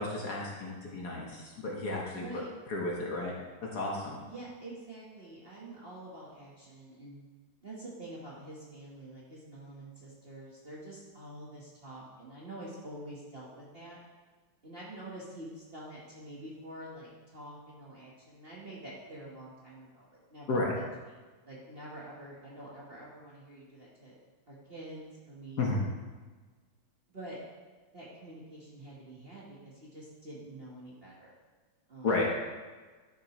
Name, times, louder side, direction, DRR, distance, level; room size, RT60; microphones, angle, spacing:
voice 1, 0.0-2.4 2.7-3.3 3.7-4.2 20.5-20.7 25.6-25.8 32.0-32.3, left 2 dB, 50° left, -2 dB, 1.6 m, -32 dB
voice 2, 2.1-2.5 4.2-7.2 7.6-14.0 14.6-20.8 21.4-24.2 24.5-25.7 27.1-27.4 27.9-31.3 31.9-32.3, right 1 dB, 30° right, -6 dB, 1.4 m, -47 dB
11.5 x 6.4 x 3.2 m, 1.3 s
omnidirectional pair, 2.4 m